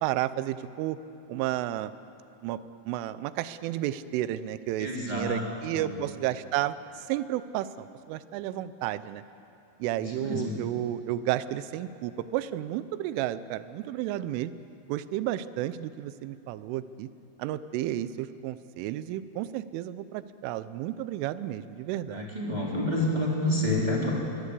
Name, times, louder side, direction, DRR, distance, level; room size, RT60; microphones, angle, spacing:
voice 1, 0.0-1.0 1.3-1.9 2.4-2.6 2.9-9.2 9.8-14.5 14.9-17.1 17.4-22.3, right 13 dB, 85° right, 14 dB, 3.2 m, -32 dB
voice 2, 4.8-5.4 5.7-5.9 10.0-10.6 22.1-24.1, left 1 dB, 10° right, -4 dB, 3.4 m, -29 dB
23.5 x 21.5 x 8.4 m, 2.7 s
omnidirectional pair, 5.7 m